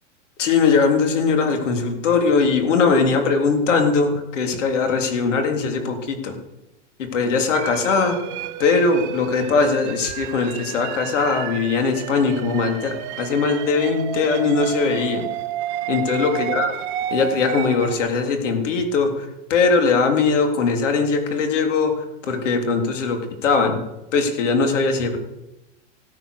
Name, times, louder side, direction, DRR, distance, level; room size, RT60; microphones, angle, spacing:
voice 1, 0.4-6.4 7.0-8.2 8.6-15.3 15.9-16.7 17.1-23.8 24.1-25.2, left 4 dB, 75° left, 4 dB, 3.5 m, -20 dB
sound 1, 7.5-18.0, right 10 dB, 30° right, 1.1 m, -31 dB
16.5 x 10.0 x 6.6 m, 0.94 s
supercardioid pair, 150°, 37 cm